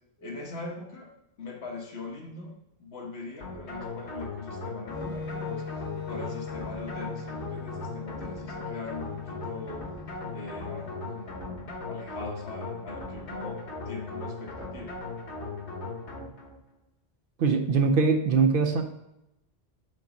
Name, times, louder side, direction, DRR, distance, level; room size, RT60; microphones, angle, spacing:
voice 1, 0.2-1.1 1.4-2.5 2.8-9.8 10.3-14.9, left 3 dB, 70° left, 0 dB, 1.4 m, -41 dB
sound 1, 3.4-16.6, left 3 dB, 90° left, 1.4 m, -38 dB
Wind instrument woodwind instrument, 4.9-10.9, left 5 dB, 5° left, 2.2 m, -40 dB
voice 2, 17.4-18.8, right 5 dB, 60° right, 5 dB, 0.7 m, -22 dB
5.3 x 3.9 x 5.2 m, 0.87 s
omnidirectional pair, 1.1 m